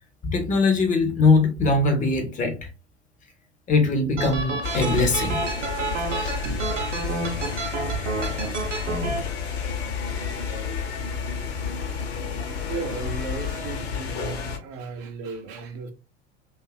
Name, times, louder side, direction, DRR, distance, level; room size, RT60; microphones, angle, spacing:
voice 1, 0.2-2.7 3.7-5.4 6.1-6.3 12.4-12.6, left 3 dB, 20° left, 0.5 m, -22 dB
sound 1, 4.2-9.2, right 4 dB, 80° right, 0.7 m, -29 dB
sound 2, 4.6-14.6, left 6 dB, 60° left, 0.7 m, -31 dB
voice 2, 12.5-15.9, right 5 dB, 40° right, 0.5 m, -35 dB
2.6 x 2.4 x 2.2 m
figure-of-eight pair, 75°, 36 cm